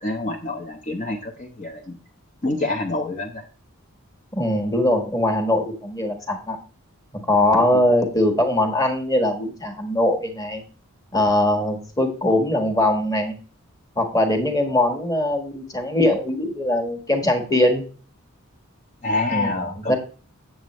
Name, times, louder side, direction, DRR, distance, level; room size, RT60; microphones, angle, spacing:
voice 1, 0.0-2.0 2.4-3.4 19.0-20.0, left 2 dB, 35° left, 1 dB, 0.8 m, -27 dB
voice 2, 4.3-6.6 7.1-10.6 11.1-13.3 13.9-17.8 19.3-20.0, left 1 dB, 15° left, 4 dB, 1.4 m, -21 dB
8.6 x 7.5 x 3.1 m, 0.38 s
head